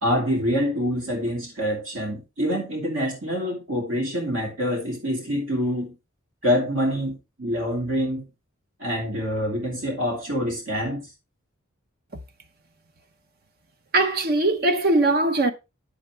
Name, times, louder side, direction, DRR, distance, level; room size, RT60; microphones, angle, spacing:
voice 1, 0.0-5.9 6.4-8.2 8.8-11.1, equal, 65° right, 2.5 m, -26 dB
voice 2, 13.9-15.5, right 2 dB, 45° right, 0.7 m, -20 dB
8.9 x 7.1 x 3.2 m
head